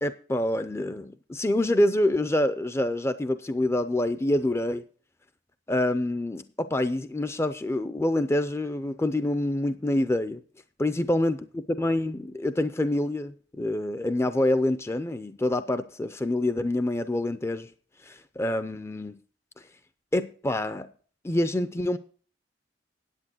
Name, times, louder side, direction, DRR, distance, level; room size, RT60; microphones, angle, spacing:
voice 1, 0.0-4.8 5.7-10.4 10.8-17.7 18.0-19.2 20.1-20.9 21.2-22.0, left 1 dB, 15° left, 12 dB, 0.5 m, -26 dB
9.9 x 8.4 x 6.0 m, 0.43 s
head